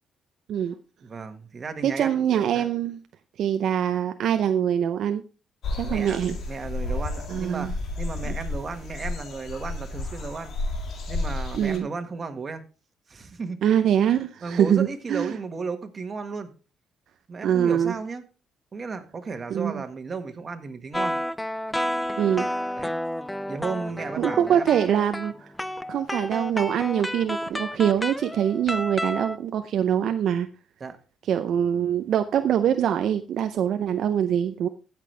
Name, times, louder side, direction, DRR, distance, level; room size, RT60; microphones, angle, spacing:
voice 1, 1.0-2.2 2.5-2.7 5.8-6.2 6.5-7.7 8.0-10.5 11.1-12.6 13.1-13.6 14.4-16.5 17.3-18.2 18.7-21.1 22.7-22.9 23.5-24.8 30.8-31.0, right 4 dB, 40° right, 1.5 m, -34 dB
voice 2, 1.8-3.0 3.4-5.2 5.7-6.4 7.3-7.7 8.3-8.4 11.5-11.9 13.6-15.4 17.4-17.9 19.5-19.8 22.2-22.5 24.2-25.5 25.9-30.5 31.3-34.7, right 9 dB, 70° right, 0.5 m, -24 dB
sound 1, 5.6-11.8, left 2 dB, 65° left, 2.0 m, -32 dB
sound 2, 20.9-29.4, left 1 dB, 10° left, 0.6 m, -31 dB
16.0 x 6.0 x 3.3 m
cardioid pair, 90°, 0 cm